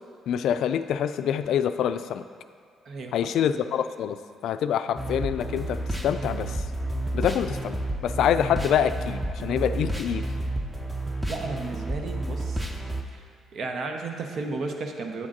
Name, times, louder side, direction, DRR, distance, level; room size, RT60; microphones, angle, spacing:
voice 1, 0.3-2.2 3.1-4.2 4.4-6.6 7.1-7.8 8.0-10.3, left 9 dB, 75° left, 11 dB, 0.3 m, -26 dB
sound 1, 5.0-13.0, right 1 dB, 10° right, 0.8 m, -31 dB
voice 2, 11.3-12.7 13.1-13.2 13.5-15.3, right 3 dB, 60° right, 4 dB, 0.8 m, -33 dB
8.5 x 3.6 x 6.5 m, 2.1 s
supercardioid pair, 70°, 0 cm